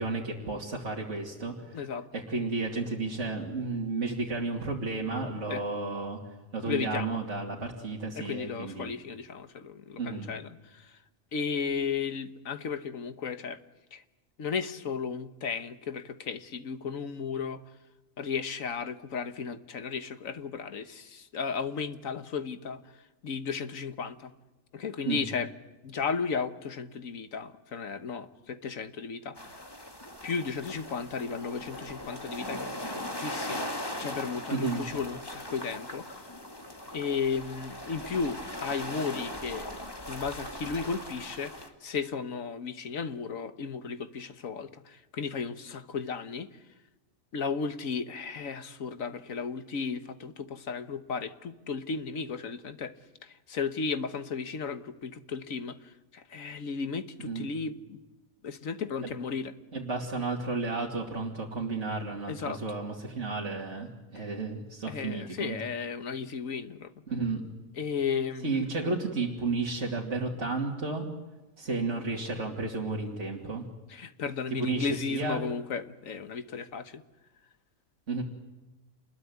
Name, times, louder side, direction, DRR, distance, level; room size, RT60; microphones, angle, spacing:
voice 1, 0.0-1.5 2.1-6.2 6.5-8.9 10.0-10.3 25.1-25.2 34.5-34.8 57.2-57.5 59.0-59.1 59.7-65.6 67.1-67.4 68.4-71.0 71.6-73.7 74.6-75.4 78.1-78.2, right 3 dB, 60° right, -3 dB, 3.0 m, -32 dB
voice 2, 1.7-2.1 5.5-5.6 6.6-7.2 8.1-11.0 11.3-13.6 13.9-14.0 14.4-17.6 18.2-22.8 23.2-24.3 24.7-25.5 25.8-29.6 30.2-36.3 36.9-39.7 40.1-46.5 47.3-52.9 53.2-58.0 58.4-59.5 62.3-62.6 64.1-64.3 64.9-66.9 67.7-68.7 73.9-77.0, left 5 dB, 75° left, 11 dB, 1.7 m, -34 dB
sound 1, 29.4-41.7, left 1 dB, 15° left, 2.3 m, -39 dB
27.5 x 21.0 x 9.6 m, 1.1 s
omnidirectional pair, 1.4 m